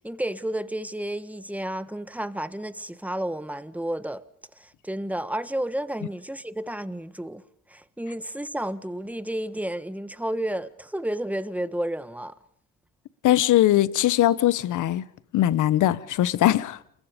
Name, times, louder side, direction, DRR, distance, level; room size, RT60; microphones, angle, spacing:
voice 1, 0.0-4.2 4.6-7.4 7.7-12.3, right 1 dB, 5° right, 1.4 m, -31 dB
voice 2, 13.2-15.1 15.3-16.8, left 13 dB, 80° left, 1.2 m, -21 dB
28.5 x 22.0 x 5.2 m
cardioid pair, 90°, 30 cm